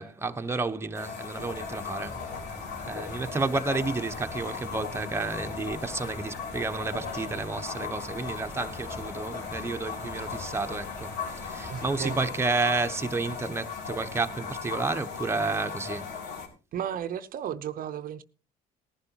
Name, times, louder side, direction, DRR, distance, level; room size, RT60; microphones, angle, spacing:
voice 1, 0.0-2.2 2.8-16.1, right 3 dB, 15° right, 1.0 m, -31 dB
sound 1, 0.9-16.5, left 6 dB, 85° left, 3.9 m, -38 dB
sound 2, 1.4-12.2, equal, 10° left, 2.6 m, -45 dB
voice 2, 11.7-12.3 16.7-18.2, right 9 dB, 55° right, 0.7 m, -34 dB
19.0 x 11.0 x 2.9 m
cardioid pair, 110°, 17 cm